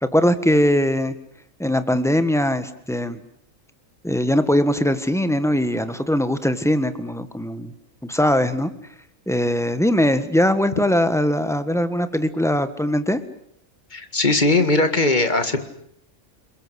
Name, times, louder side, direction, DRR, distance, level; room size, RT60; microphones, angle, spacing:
voice 1, 0.0-1.1 1.6-3.2 4.0-7.7 8.0-8.7 9.3-13.2, left 1 dB, ahead, 11 dB, 1.5 m, -21 dB
voice 2, 13.9-15.7, left 2 dB, 35° left, 8 dB, 2.1 m, -19 dB
28.5 x 21.0 x 8.1 m, 0.70 s
omnidirectional pair, 1.4 m